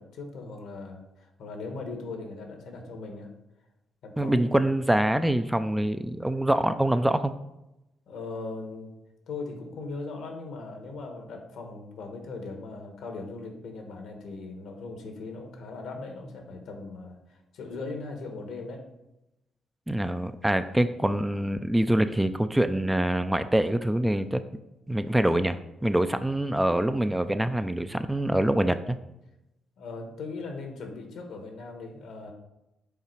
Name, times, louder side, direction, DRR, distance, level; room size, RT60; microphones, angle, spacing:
voice 1, 0.0-3.3 4.0-4.4 8.1-8.9 9.3-18.8 29.8-32.3, left 3 dB, 75° left, 4 dB, 1.2 m, -39 dB
voice 2, 4.2-7.3 19.9-24.4 24.9-29.0, right 1 dB, 10° right, 10 dB, 0.3 m, -25 dB
5.7 x 3.9 x 4.6 m, 0.92 s
cardioid pair, 90°, 0 cm